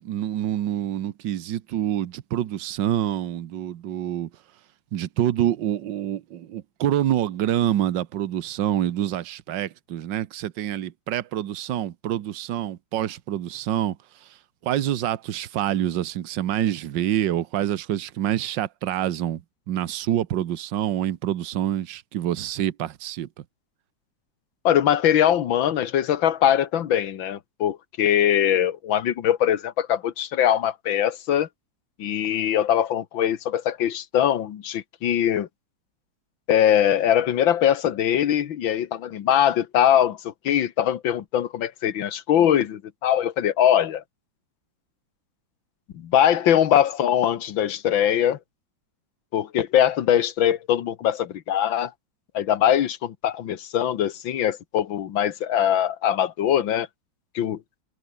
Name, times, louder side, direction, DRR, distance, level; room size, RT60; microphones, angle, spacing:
voice 1, 0.0-4.3 4.9-14.0 14.6-19.4 19.7-23.3, right 11 dB, 75° right, 1.7 m, -26 dB
voice 2, 24.7-31.5 32.0-35.5 36.5-44.0 45.9-48.4 49.3-51.9 52.3-56.9 57.4-57.6, left 10 dB, 90° left, 2.0 m, -22 dB
omnidirectional pair, 2.0 m